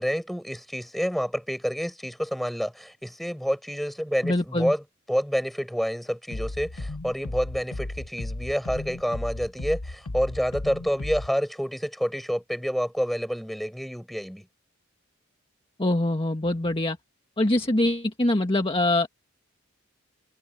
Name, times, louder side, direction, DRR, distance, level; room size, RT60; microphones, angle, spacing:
voice 1, 0.0-4.8 5.1-14.4, equal, ahead, 6.0 m, -28 dB
voice 2, 4.2-4.7 15.8-17.0 17.4-19.1, left 1 dB, 25° left, 1.7 m, -24 dB
sound 1, 6.3-11.3, left 2 dB, 85° left, 1.2 m, -35 dB
head